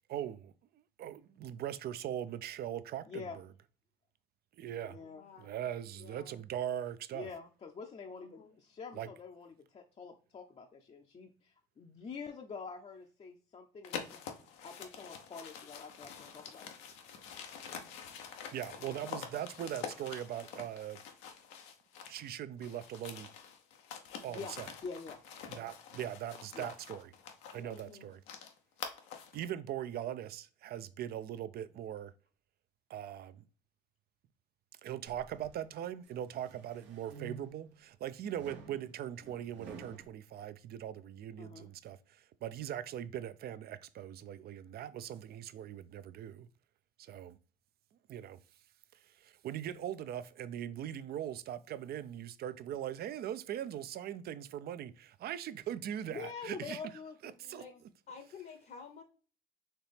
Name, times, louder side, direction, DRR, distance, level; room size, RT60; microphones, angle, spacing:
voice 1, 0.1-3.5 4.6-5.0 5.4-7.3 8.9-9.1 18.5-21.0 22.1-23.3 24.2-24.7 25.5-27.1 27.5-28.2 29.3-32.1 32.9-33.4 34.8-46.5 47.0-47.4 48.1-48.4 49.0-56.8 57.2-57.6, right 10 dB, 55° right, 0.4 m, -41 dB
voice 2, 3.1-3.4 4.9-5.2 7.1-14.2 14.6-16.7 24.3-24.5 24.8-25.2 26.5-26.7 27.5-27.7 41.4-41.7 56.1-57.8, left 5 dB, 35° left, 0.6 m, -46 dB
voice 3, 4.7-5.5 5.9-6.4 8.1-8.6 18.8-18.9 27.7-28.1 57.6-57.7 58.1-59.0, left 6 dB, 55° left, 0.9 m, -52 dB
sound 1, 13.8-22.3 22.6-29.4, left 7 dB, 90° left, 0.7 m, -46 dB
sound 2, 35.1-35.6 36.1-37.8 38.3-40.1, right 5 dB, 80° right, 0.9 m, -51 dB
4.3 x 2.9 x 3.3 m
supercardioid pair, 80°, 19 cm